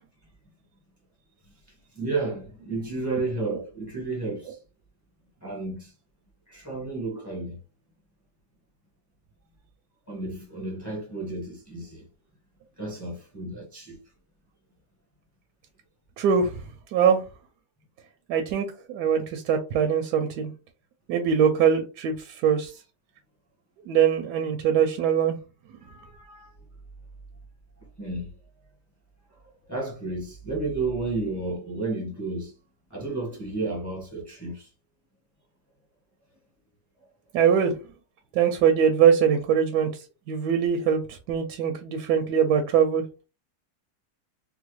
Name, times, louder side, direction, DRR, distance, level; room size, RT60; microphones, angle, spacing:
voice 1, 1.7-4.6 5.4-5.9 6.5-7.6 10.1-12.0 12.8-14.0 25.8-26.6 28.0-28.3 29.3-32.5 32.9-34.7, right 3 dB, 15° left, 0.9 m, -32 dB
voice 2, 16.2-16.5 16.9-17.2 18.3-20.5 21.1-22.1 22.4-22.7 23.9-25.4 37.3-37.8 38.3-39.9 40.3-41.0 41.3-43.0, right 7 dB, 85° right, 1.1 m, -22 dB
3.7 x 2.1 x 3.1 m
omnidirectional pair, 1.7 m